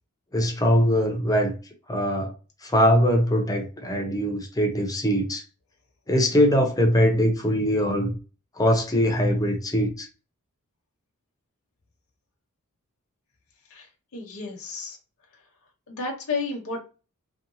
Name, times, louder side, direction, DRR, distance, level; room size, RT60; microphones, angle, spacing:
voice 1, 0.3-1.5 1.9-2.3 2.6-5.4 6.1-8.2 8.6-10.1, equal, 15° left, 0.6 m, -22 dB
voice 2, 14.1-15.0 15.9-16.8, left 4 dB, 65° left, 0.8 m, -31 dB
2.8 x 2.2 x 2.6 m
head